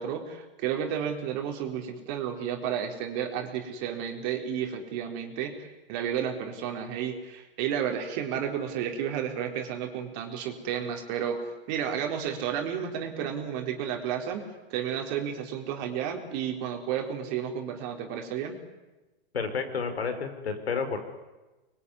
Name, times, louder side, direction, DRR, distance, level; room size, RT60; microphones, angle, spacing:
voice 1, 0.0-18.6, right 8 dB, 45° right, 3 dB, 4.1 m, -32 dB
voice 2, 19.3-21.0, left 5 dB, 90° left, 8 dB, 5.1 m, -30 dB
26.0 x 22.5 x 9.8 m, 1.1 s
hypercardioid pair, 130°, 30 cm